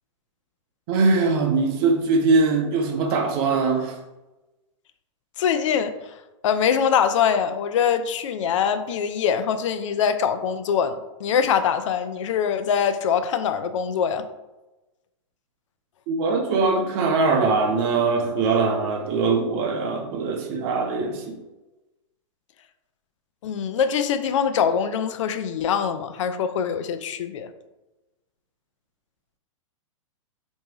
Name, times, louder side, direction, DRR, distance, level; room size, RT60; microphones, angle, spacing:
voice 1, 0.9-4.0 16.1-21.4, right 4 dB, 45° right, 0.8 m, -22 dB
voice 2, 5.4-6.1 6.4-14.3 23.4-27.5, left 7 dB, 65° left, 0.4 m, -23 dB
4.5 x 2.7 x 3.0 m
hypercardioid pair, 120°, 17 cm